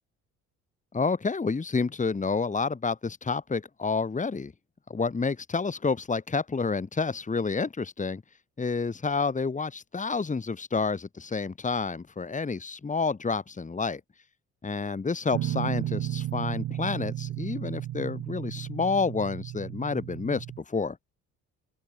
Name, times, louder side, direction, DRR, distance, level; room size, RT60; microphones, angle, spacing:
voice 1, 0.9-4.5 4.9-8.2 8.6-14.0 14.6-21.0, left 4 dB, 25° left, 2.3 m, -29 dB
Guitar, 15.3-20.6, right 13 dB, 75° right, 1.7 m, -33 dB
open air
cardioid pair, 90°, 30 cm